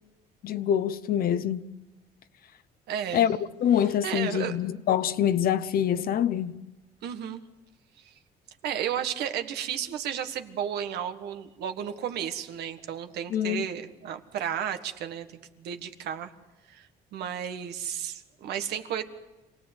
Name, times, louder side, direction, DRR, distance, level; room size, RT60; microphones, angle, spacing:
voice 1, 0.4-1.7 3.1-6.6 13.3-13.6, left 9 dB, 60° left, 1.0 m, -25 dB
voice 2, 2.9-3.3 4.0-4.6 7.0-7.4 8.0-8.1 8.6-16.3 16.7-19.0, right 9 dB, 75° right, 1.6 m, -33 dB
26.5 x 18.0 x 8.1 m
cardioid pair, 110°, 17 cm